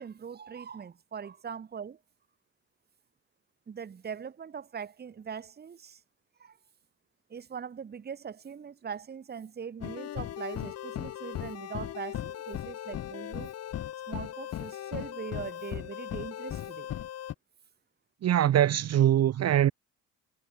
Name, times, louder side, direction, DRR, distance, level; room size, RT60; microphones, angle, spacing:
voice 1, 0.0-2.0 3.7-6.0 6.4-6.6 7.3-13.5 14.1-16.9, right 7 dB, 35° right, 1.0 m, -41 dB
sound 1, 9.8-17.3, left 12 dB, 55° left, 0.7 m, -38 dB
voice 2, 18.2-19.7, right 11 dB, 55° right, 0.9 m, -23 dB
cardioid pair, 90°, 30 cm